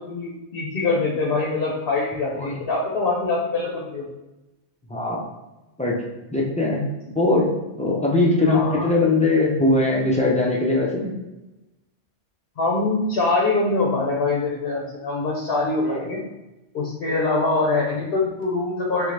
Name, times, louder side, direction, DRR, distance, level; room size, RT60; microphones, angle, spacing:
voice 1, 0.0-4.1 7.1-7.2 8.4-8.9 12.6-16.2 16.7-19.1, left 3 dB, 60° left, -2 dB, 0.9 m, -24 dB
voice 2, 4.9-5.2 5.8-6.0 6.3-6.8 7.1-7.5 7.8-11.1 15.8-16.1, left 2 dB, 10° left, -3 dB, 0.4 m, -20 dB
3.9 x 3.2 x 3.2 m, 1.0 s
omnidirectional pair, 1.2 m